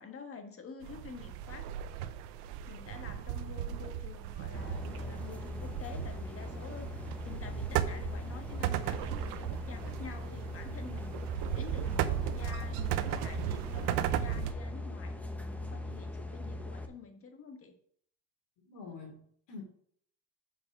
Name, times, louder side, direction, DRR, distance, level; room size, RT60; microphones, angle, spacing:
voice 1, 0.0-1.7 2.4-17.8, left 5 dB, 30° left, 6 dB, 1.5 m, -48 dB
sound 1, 0.8-14.5, right 11 dB, 90° right, 0.8 m, -36 dB
sound 2, 4.5-16.9, left 1 dB, 5° left, 0.9 m, -40 dB
voice 2, 18.6-19.6, left 4 dB, 65° left, 2 dB, 3.1 m, -46 dB
7.5 x 4.7 x 6.1 m, 0.63 s
supercardioid pair, 105°, 45 cm